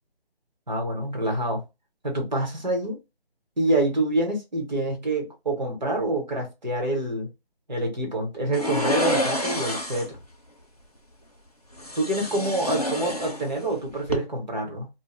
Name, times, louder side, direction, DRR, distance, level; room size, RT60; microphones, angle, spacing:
voice 1, 0.7-1.6 2.0-3.0 3.6-7.3 7.7-10.2 11.9-14.9, right 1 dB, 45° right, 1.0 m, -26 dB
sound 1, 8.5-10.2 11.8-13.7 14.0-14.2, left 1 dB, 40° left, 0.4 m, -28 dB
2.2 x 2.0 x 3.0 m
figure-of-eight pair, 180°, 31 cm